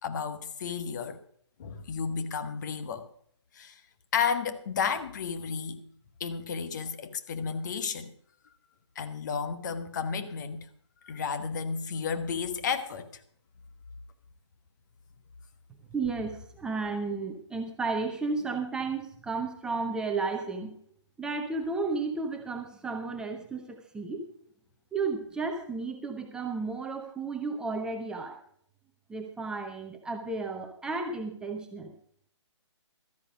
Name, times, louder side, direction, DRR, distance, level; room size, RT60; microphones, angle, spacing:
voice 1, 0.0-1.2 1.6-3.1 3.5-3.8 4.1-5.8 6.2-8.1 8.9-10.6 11.0-13.1, left 6 dB, 40° left, 1.1 m, -32 dB
voice 2, 15.9-20.7 21.2-24.3 24.9-28.4 29.1-31.9, right 4 dB, 5° right, 0.8 m, -33 dB
13.0 x 10.0 x 5.1 m
figure-of-eight pair, 145°, 15 cm